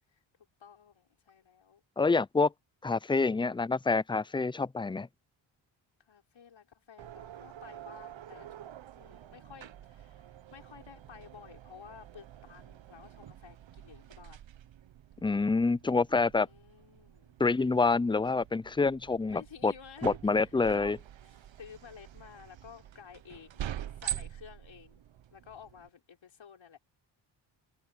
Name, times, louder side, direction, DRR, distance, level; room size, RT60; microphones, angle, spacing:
voice 1, 0.6-1.8 6.1-14.4 16.0-17.4 19.3-20.9 21.2-23.6 24.0-25.0 25.3-26.8, left 7 dB, 70° left, 5.9 m, -53 dB
voice 2, 2.0-2.5 2.8-5.1 15.2-16.5 17.4-19.7 20.0-21.0, left 4 dB, 10° left, 0.5 m, -27 dB
sound 1, 7.0-25.9, right 11 dB, 70° right, 1.1 m, -46 dB
open air
cardioid pair, 55°, 48 cm